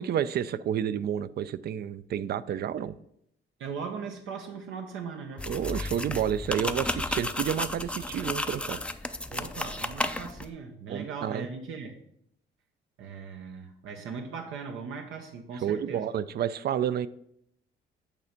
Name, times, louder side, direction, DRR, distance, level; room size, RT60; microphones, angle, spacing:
voice 1, 0.0-2.9 5.5-8.8 10.9-11.5 15.6-17.1, right 9 dB, 55° right, 16 dB, 0.4 m, -30 dB
voice 2, 2.5-2.8 3.6-5.5 9.3-11.9 13.0-16.1, right 5 dB, 80° right, 3 dB, 0.8 m, -39 dB
sound 1, 5.4-10.5, left 2 dB, 5° left, 0.4 m, -33 dB
8.3 x 3.3 x 5.2 m, 0.73 s
cardioid pair, 90°, 20 cm